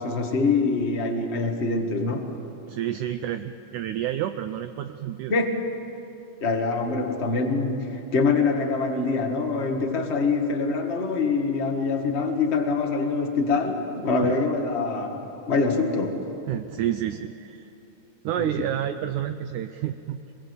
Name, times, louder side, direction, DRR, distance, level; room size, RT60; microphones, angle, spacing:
voice 1, 0.0-2.4 5.3-5.6 6.4-16.3 18.4-18.5, left 4 dB, 65° left, 3 dB, 0.6 m, -24 dB
voice 2, 2.7-5.3 14.2-14.4 16.5-17.7 18.2-20.2, right 11 dB, 80° right, 8 dB, 1.8 m, -29 dB
25.0 x 22.0 x 8.1 m, 2.8 s
omnidirectional pair, 4.3 m